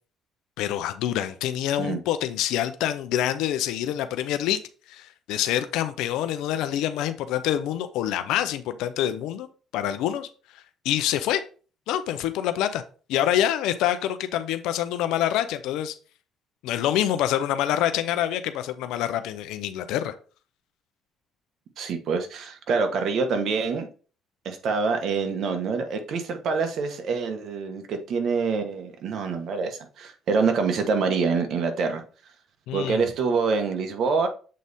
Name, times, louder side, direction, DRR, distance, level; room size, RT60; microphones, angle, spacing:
voice 1, 0.6-4.6 4.9-9.5 9.7-10.3 10.8-11.4 11.9-12.8 13.1-15.9 16.6-20.1 32.7-33.1, left 11 dB, 85° left, 0.6 m, -26 dB
voice 2, 21.8-23.9 24.4-32.0 32.7-34.3, right 5 dB, 65° right, 1.3 m, -26 dB
7.5 x 4.1 x 3.6 m
cardioid pair, 90°, 0 cm